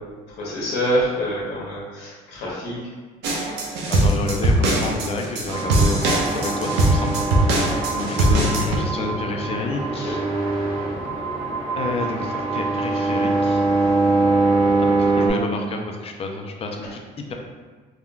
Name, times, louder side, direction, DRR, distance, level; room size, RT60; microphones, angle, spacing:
voice 1, 0.0-2.8 10.0-10.2, equal, 85° left, -6 dB, 0.8 m, -26 dB
sound 1, 3.2-8.8, right 1 dB, 85° right, 0.6 m, -21 dB
voice 2, 3.9-7.1 7.4-10.2 11.8-13.6 14.8-17.3, left 3 dB, 35° left, 2 dB, 0.4 m, -30 dB
sound 2, 5.5-15.3, right 2 dB, 40° right, 0.8 m, -23 dB
3.5 x 2.2 x 2.4 m, 1.4 s
cardioid pair, 110°, 17 cm